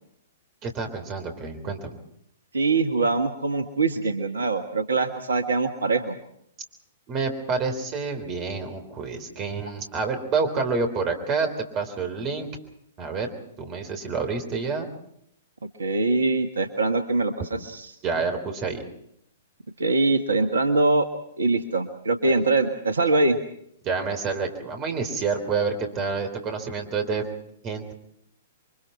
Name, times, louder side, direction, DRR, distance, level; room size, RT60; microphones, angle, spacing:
voice 1, 0.6-1.9 7.1-11.5 11.7-12.5 13.0-13.3 13.6-14.9 18.0-18.8 23.8-27.2 27.6-27.9, right 4 dB, 30° right, 6 dB, 3.7 m, -28 dB
voice 2, 2.5-6.1 15.8-17.3 17.6-17.9 19.8-21.1 21.4-23.4, right 3 dB, 70° right, 7 dB, 1.4 m, -23 dB
28.5 x 23.5 x 4.5 m, 0.71 s
figure-of-eight pair, 110°, 0 cm